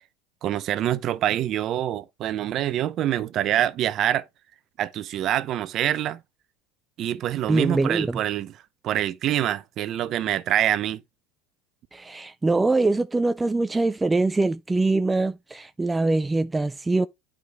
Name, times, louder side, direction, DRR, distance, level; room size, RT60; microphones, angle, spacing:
voice 1, 0.4-4.2 4.8-6.2 7.0-8.5 8.8-11.0, right 12 dB, 45° right, 0.7 m, -25 dB
voice 2, 7.5-8.2 11.9-17.1, right 2 dB, 10° right, 0.4 m, -23 dB
9.2 x 5.0 x 3.2 m
supercardioid pair, 115°, 0 cm